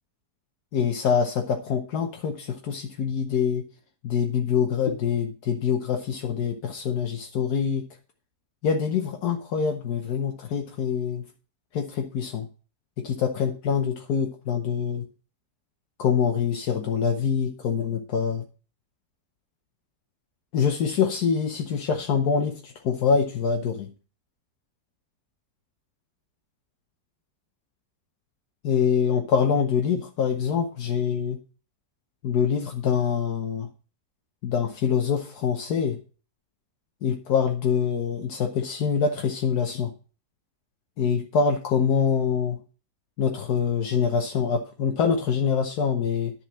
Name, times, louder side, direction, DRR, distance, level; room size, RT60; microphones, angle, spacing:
voice 1, 0.7-3.7 4.0-7.9 8.6-11.2 11.7-12.5 13.0-15.0 16.0-18.4 20.5-23.9 28.6-31.4 32.2-33.7 34.4-36.0 37.0-39.9 41.0-42.6 43.2-46.3, left 7 dB, 80° left, 4 dB, 1.4 m, -25 dB
10.0 x 4.5 x 7.5 m, 0.38 s
omnidirectional pair, 1.7 m